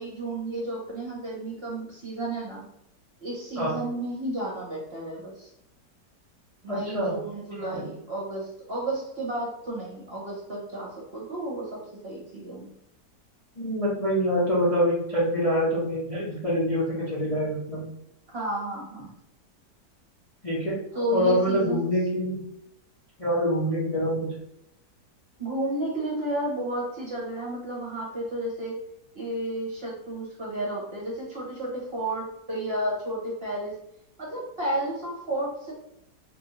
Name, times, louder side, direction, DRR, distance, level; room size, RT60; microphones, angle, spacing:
voice 1, 0.0-2.7 3.2-5.5 6.6-12.7 18.3-19.1 20.9-21.8 25.4-28.8 29.1-33.8 34.2-35.7, right 1 dB, 40° right, -4 dB, 1.1 m, -32 dB
voice 2, 6.7-7.2 7.7-7.8 13.6-17.9 20.4-20.8 21.1-22.4 23.2-24.3, equal, 30° left, -7 dB, 0.8 m, -25 dB
3.1 x 2.7 x 3.9 m, 0.78 s
omnidirectional pair, 1.8 m